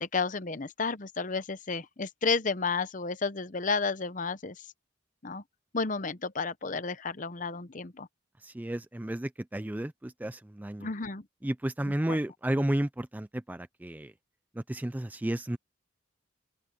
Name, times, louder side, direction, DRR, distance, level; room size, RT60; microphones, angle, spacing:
voice 1, 0.0-4.7 5.2-5.4 5.7-8.1 10.8-11.2 12.1-12.2, left 4 dB, 40° left, 0.8 m, -32 dB
voice 2, 8.4-10.9 11.4-14.1 14.5-15.6, right 1 dB, 10° right, 0.3 m, -32 dB
open air
head